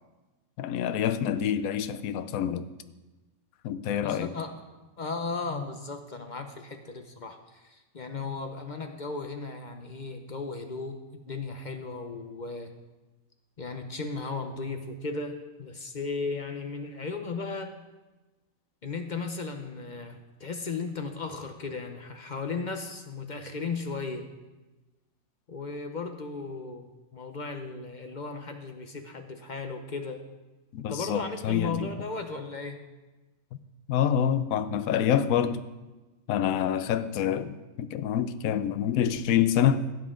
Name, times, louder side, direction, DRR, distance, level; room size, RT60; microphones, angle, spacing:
voice 1, 0.6-2.7 3.6-4.3 30.7-31.9 33.9-35.6 36.3-39.8, left 9 dB, 80° left, 1.0 m, -26 dB
voice 2, 4.0-4.5 5.0-11.0 11.3-12.7 13.6-17.7 18.8-24.3 25.5-30.2 30.8-32.8, left 4 dB, 40° left, 0.7 m, -36 dB
16.0 x 7.5 x 3.7 m
omnidirectional pair, 1.5 m